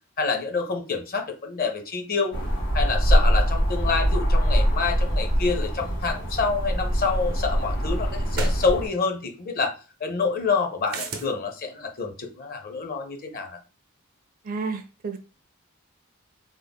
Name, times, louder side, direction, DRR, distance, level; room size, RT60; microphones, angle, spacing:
voice 1, 0.2-2.4 2.7-9.7 10.0-13.6, left 4 dB, 45° left, 4 dB, 0.7 m, -27 dB
sound 1, 2.3-8.9, equal, 65° left, 1.8 m, -23 dB
sound 2, 6.9-7.0 8.3-8.7 10.9-11.3, right 4 dB, 90° right, 0.7 m, -32 dB
voice 2, 14.4-15.2, right 4 dB, 40° right, 8 dB, 0.4 m, -31 dB
3.6 x 2.0 x 3.6 m, 0.34 s
head